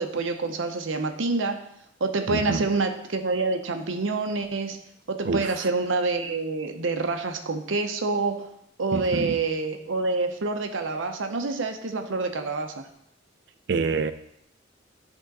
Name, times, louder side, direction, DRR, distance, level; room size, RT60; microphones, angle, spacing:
voice 1, 0.0-1.6 2.0-4.8 5.1-8.5 8.8-12.8, right 3 dB, 85° right, 6 dB, 0.7 m, -27 dB
voice 2, 2.3-2.7 5.3-5.4 8.9-9.4 13.7-14.1, right 4 dB, 60° right, 11 dB, 0.4 m, -26 dB
9.8 x 3.7 x 4.1 m, 0.74 s
head